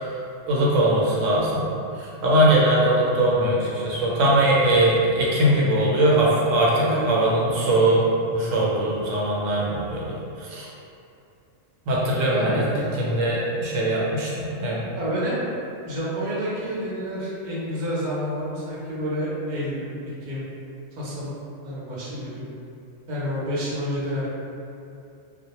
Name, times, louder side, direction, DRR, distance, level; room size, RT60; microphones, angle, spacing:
voice 1, 0.5-1.7 2.0-8.0 8.3-10.7 11.9-12.6 12.9-14.8, right 1 dB, 90° right, -5 dB, 1.0 m, -21 dB
voice 2, 6.8-7.3 12.3-12.7 15.0-15.4 15.8-19.9 20.2-20.4 21.0-21.4 21.6-22.4 23.1-24.3, equal, 50° right, -8 dB, 0.6 m, -29 dB
2.1 x 2.1 x 2.9 m, 2.6 s
omnidirectional pair, 1.3 m